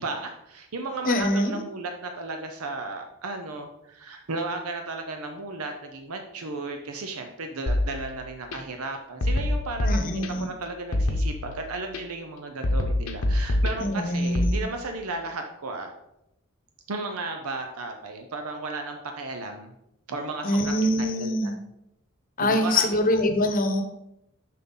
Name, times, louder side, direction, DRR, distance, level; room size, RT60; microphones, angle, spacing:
voice 1, 0.0-10.0 10.4-15.9 16.9-19.7 20.1-21.5 22.4-23.0, right 3 dB, 90° right, 5 dB, 0.7 m, -34 dB
voice 2, 1.0-1.6 9.8-10.5 13.8-14.7 20.4-21.5 22.4-23.8, left 1 dB, 40° left, 6 dB, 0.9 m, -24 dB
sound 1, 7.7-8.6 9.2-10.6 10.9-12.0 12.6-14.5, left 1 dB, 85° left, 0.9 m, -26 dB
7.4 x 5.8 x 3.9 m, 0.84 s
head